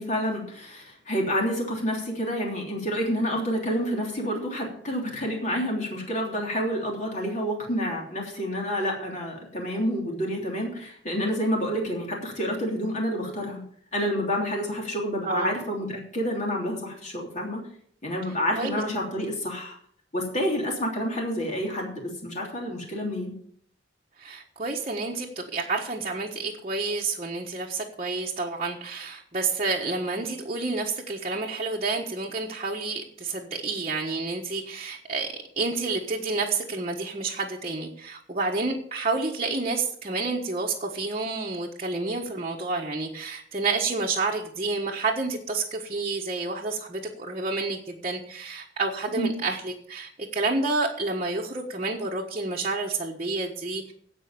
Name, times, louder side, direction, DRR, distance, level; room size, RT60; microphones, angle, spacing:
voice 1, 0.0-13.6 13.9-17.6 18.0-19.8 20.1-23.4 49.1-49.3, equal, 40° left, -1 dB, 3.3 m, -28 dB
voice 2, 24.2-35.3 35.6-53.9, right 3 dB, 35° right, -4 dB, 1.4 m, -29 dB
16.5 x 5.6 x 6.9 m, 0.63 s
head